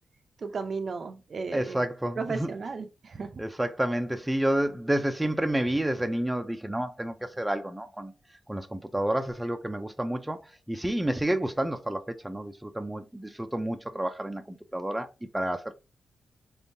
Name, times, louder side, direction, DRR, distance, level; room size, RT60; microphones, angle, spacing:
voice 1, 0.4-1.8 2.2-3.4, right 4 dB, 55° right, 0.6 m, -34 dB
voice 2, 1.5-2.5 3.4-8.1 8.5-10.4 10.7-15.1 15.3-15.7, right 1 dB, 10° right, 0.5 m, -29 dB
3.8 x 3.6 x 2.7 m
cardioid pair, 85°, 0 cm